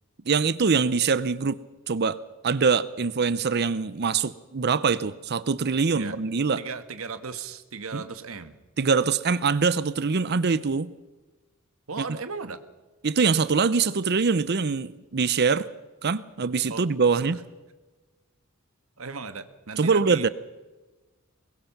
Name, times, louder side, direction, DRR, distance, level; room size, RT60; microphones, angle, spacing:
voice 1, 0.3-1.6 1.9-2.2 2.4-6.6 7.9-8.0 8.8-10.9 12.0-12.1 13.0-15.7 16.0-17.4 19.8-20.3, right 5 dB, 50° right, 17 dB, 0.6 m, -23 dB
voice 2, 6.6-8.6 11.9-12.6 16.7-16.8 17.2-17.3 19.0-20.3, right 5 dB, 80° right, 11 dB, 1.4 m, -36 dB
23.5 x 21.5 x 5.9 m, 1.2 s
head